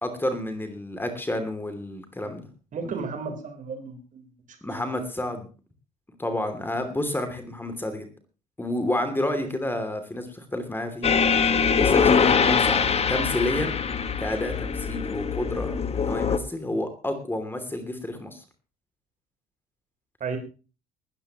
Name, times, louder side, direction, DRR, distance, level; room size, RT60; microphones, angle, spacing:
voice 1, 0.0-2.5 2.8-2.9 4.6-5.5 6.2-8.1 8.6-11.1 11.8-13.7 14.2-18.4, left 1 dB, 10° left, 7 dB, 2.8 m, -30 dB
voice 2, 2.7-4.3 9.4-9.5 20.2-20.4, right 5 dB, 40° right, 5 dB, 4.0 m, -33 dB
sound 1, 11.0-16.4, left 6 dB, 30° left, 1.5 m, -23 dB
19.5 x 14.0 x 3.0 m, 0.34 s
figure-of-eight pair, 55°, 21 cm